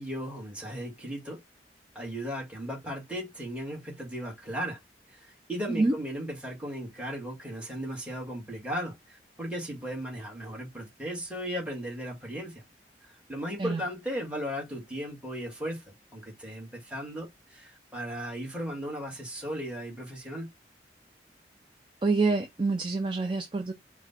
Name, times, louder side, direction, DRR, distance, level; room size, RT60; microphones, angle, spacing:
voice 1, 0.0-1.4 2.0-4.8 5.1-12.6 13.0-20.5, equal, 5° right, 1.9 m, -36 dB
voice 2, 22.0-23.7, right 3 dB, 30° right, 0.5 m, -26 dB
4.8 x 2.3 x 4.2 m
head